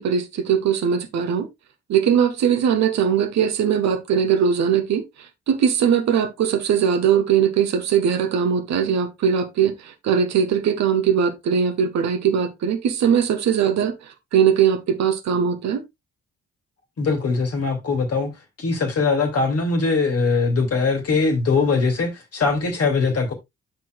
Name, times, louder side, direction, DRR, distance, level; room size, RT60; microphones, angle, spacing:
voice 1, 0.0-1.5 1.9-5.0 5.5-9.7 10.0-14.0 14.3-15.8, right 7 dB, 55° right, 1.4 m, -20 dB
voice 2, 17.0-18.3 18.6-23.3, left 4 dB, 45° left, 2.5 m, -21 dB
13.0 x 4.5 x 2.4 m
figure-of-eight pair, 40°, 34 cm